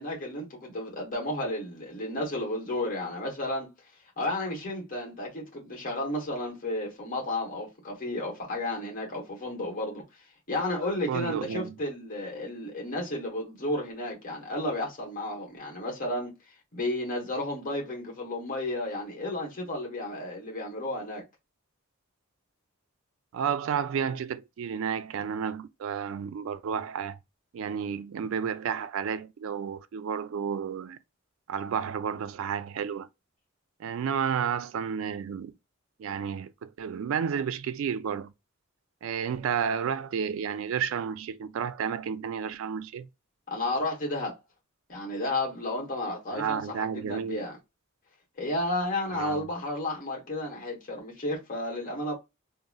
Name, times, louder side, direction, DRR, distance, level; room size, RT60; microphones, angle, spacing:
voice 1, 0.0-3.7 4.2-10.0 10.5-16.3 16.7-21.2 43.5-44.4 44.9-47.6 48.4-52.1, left 1 dB, 40° left, 1.0 m, -32 dB
voice 2, 11.1-11.8 23.3-27.2 27.5-31.0 31.5-33.1 33.8-35.6 36.0-38.3 39.0-43.1 46.3-47.5 49.1-49.5, right 7 dB, 70° right, 0.3 m, -31 dB
3.7 x 2.0 x 2.2 m
head